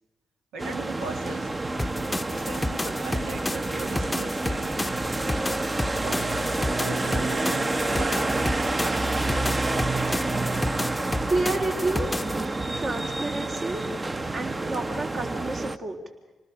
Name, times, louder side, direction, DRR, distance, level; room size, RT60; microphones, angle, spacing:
voice 1, 0.5-1.6 2.3-4.8 6.0-9.2, right 4 dB, 80° right, 4 dB, 1.8 m, -40 dB
sound 1, 0.6-15.8, right 2 dB, 30° right, 1.0 m, -28 dB
sound 2, 1.8-12.5, left 1 dB, 15° left, 0.8 m, -32 dB
voice 2, 11.2-12.1 12.7-13.8 14.3-16.0, right 2 dB, 55° right, 2 dB, 3.7 m, -30 dB
28.0 x 19.0 x 7.0 m, 1.2 s
hypercardioid pair, 45°, 0 cm